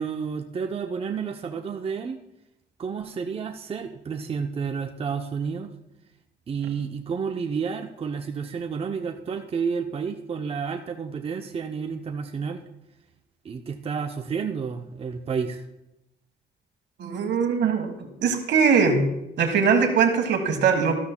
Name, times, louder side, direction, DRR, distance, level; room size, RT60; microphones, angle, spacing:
voice 1, 0.0-2.2 2.8-5.7 6.5-12.6 13.4-15.6, right 6 dB, 35° right, 5 dB, 0.6 m, -30 dB
voice 2, 17.0-17.9 18.2-21.0, right 5 dB, 75° right, 6 dB, 1.4 m, -21 dB
13.0 x 13.0 x 2.2 m, 0.90 s
cardioid pair, 105°, 18 cm